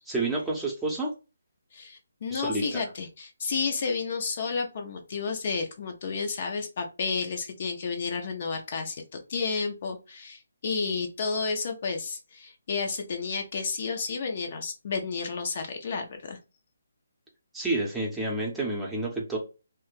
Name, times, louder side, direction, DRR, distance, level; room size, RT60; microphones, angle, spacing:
voice 1, 0.1-1.1 2.3-2.8 17.5-19.4, right 2 dB, 5° right, -4 dB, 0.8 m, -29 dB
voice 2, 1.7-9.0 9.3-16.4, left 4 dB, 45° left, 4 dB, 0.6 m, -31 dB
3.1 x 2.2 x 3.1 m, 0.30 s
figure-of-eight pair, 145°, 0 cm